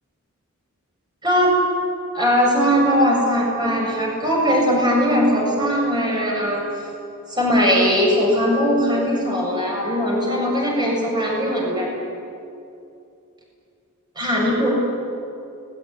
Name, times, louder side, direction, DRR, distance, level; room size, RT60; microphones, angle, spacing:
voice 1, 1.2-1.6 2.1-6.6 7.3-11.9 14.2-14.7, equal, 20° right, -2 dB, 7.5 m, -19 dB
29.0 x 20.5 x 9.9 m, 2.6 s
head